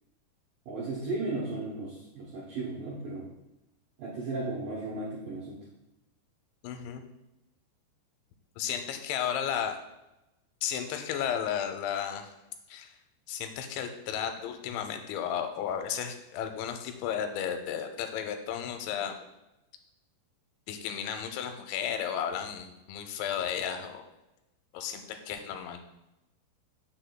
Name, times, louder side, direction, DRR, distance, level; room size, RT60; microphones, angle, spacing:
voice 1, 0.7-3.3 4.0-5.6, right 2 dB, 80° right, -5 dB, 1.9 m, -35 dB
voice 2, 6.6-7.0 8.6-9.8 10.6-12.3 12.7-12.9 13.3-19.2 20.7-24.1 24.7-25.8, left 8 dB, 85° left, 7 dB, 2.9 m, -33 dB
7.9 x 6.3 x 2.2 m, 0.95 s
omnidirectional pair, 5.3 m